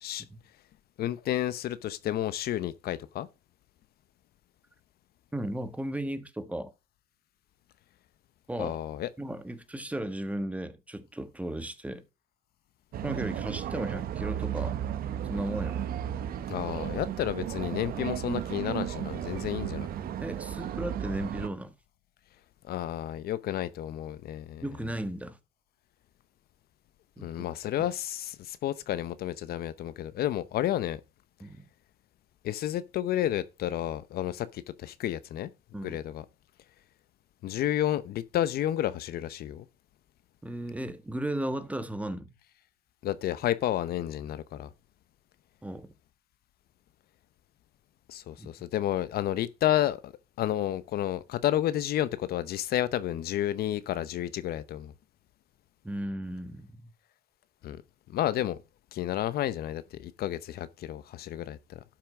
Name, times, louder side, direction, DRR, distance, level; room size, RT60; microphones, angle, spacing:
voice 1, 1.0-3.3 8.6-9.1 16.5-19.9 22.6-24.7 27.2-31.0 32.4-35.5 35.8-36.2 37.4-39.7 43.0-44.7 48.1-50.1 50.4-54.9 57.6-57.8 58.1-58.6 58.9-61.8, left 12 dB, 65° left, 0.8 m, -31 dB
voice 2, 5.3-6.7 8.5-8.8 9.2-12.0 13.0-14.8 15.3-15.8 20.0-21.7 24.6-25.4 27.2-27.4 27.8-27.9 31.4-31.6 35.7-36.0 40.4-42.3 45.6-45.9 48.4-48.5 55.8-56.7, right 1 dB, 10° right, 1.3 m, -35 dB
sound 1, 12.9-21.5, right 10 dB, 60° right, 1.0 m, -34 dB
12.0 x 6.0 x 4.9 m
cardioid pair, 110°, 17 cm